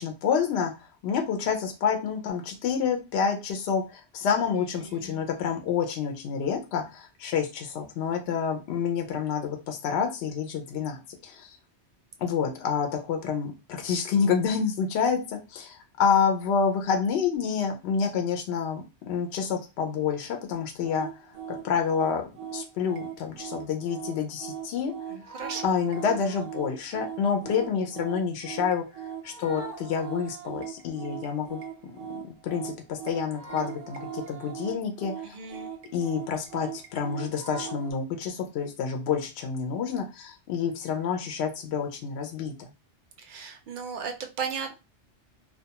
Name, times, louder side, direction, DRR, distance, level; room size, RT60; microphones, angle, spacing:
voice 1, 0.0-11.6 12.2-21.2 21.6-22.2 22.5-24.9 25.6-28.8 29.2-35.3 35.9-42.7, left 6 dB, 70° left, 4 dB, 0.8 m, -28 dB
voice 2, 4.7-5.2 25.1-25.7 35.2-35.7 43.2-44.8, right 6 dB, 60° right, 5 dB, 0.5 m, -36 dB
sound 1, 20.8-37.9, right 8 dB, 85° right, 0.9 m, -39 dB
2.2 x 2.2 x 2.8 m, 0.28 s
omnidirectional pair, 1.2 m